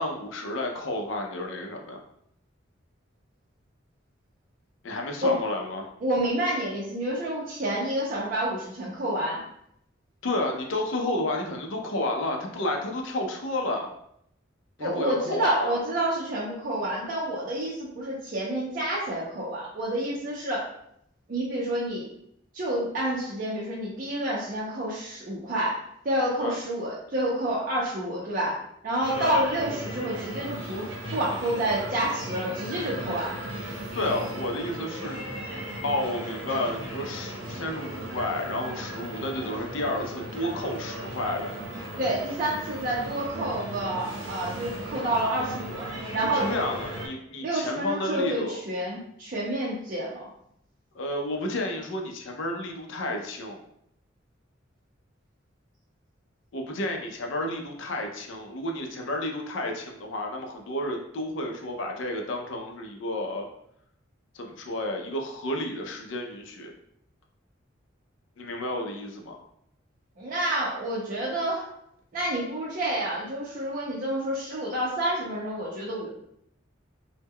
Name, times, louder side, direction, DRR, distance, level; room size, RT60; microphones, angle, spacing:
voice 1, 0.0-2.0 4.8-5.9 10.2-13.9 14.8-15.8 26.4-26.6 29.2-29.4 33.9-35.2 35.8-41.5 46.3-48.6 51.0-53.6 56.5-63.5 64.3-66.7 68.4-69.4, left 1 dB, 70° left, 2 dB, 0.5 m, -31 dB
voice 2, 6.0-9.4 14.8-20.7 21.3-22.1 22.5-28.6 28.8-33.4 42.0-46.5 47.4-50.3 70.2-71.7 72.1-76.1, right 1 dB, 45° right, -5 dB, 0.5 m, -29 dB
sound 1, 29.0-47.1, right 1 dB, 80° right, 0.7 m, -37 dB
2.1 x 2.1 x 3.4 m, 0.74 s
head